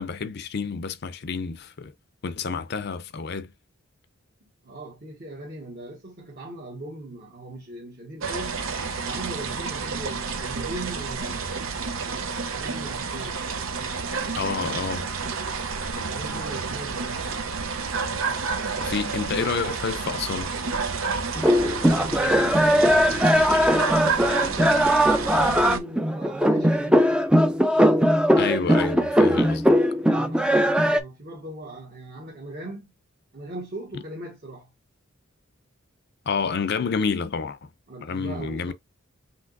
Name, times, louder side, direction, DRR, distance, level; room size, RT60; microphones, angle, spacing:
voice 1, 0.0-1.9 2.2-3.5 14.4-15.1 18.8-20.5 28.4-29.8 36.3-37.7 38.0-38.7, left 5 dB, 55° left, 0.5 m, -29 dB
voice 2, 4.6-8.6 9.0-11.8 12.2-13.4 15.9-17.3 21.6-24.3 24.9-27.2 30.0-32.9 33.3-34.7 37.9-38.7, right 2 dB, 50° right, 1.5 m, -39 dB
sound 1, 8.2-25.8, right 4 dB, 85° right, 0.8 m, -30 dB
sound 2, 21.4-31.0, equal, 5° right, 0.4 m, -20 dB
5.7 x 2.9 x 2.6 m
head